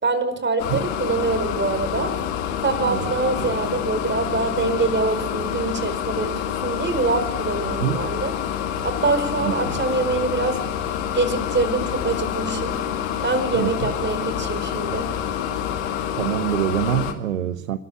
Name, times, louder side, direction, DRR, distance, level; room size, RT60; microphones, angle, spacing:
voice 1, 0.0-2.1 2.6-8.3 8.8-10.6 11.1-12.8 13.2-15.1, right 3 dB, 30° right, 4.6 m, -24 dB
sound 1, 0.6-17.1, left 9 dB, 75° left, 2.2 m, -27 dB
voice 2, 7.7-8.0 9.4-9.5 13.5-13.9 16.1-17.8, right 11 dB, 85° right, 0.8 m, -25 dB
29.0 x 13.0 x 8.5 m
figure-of-eight pair, 55°, 40 cm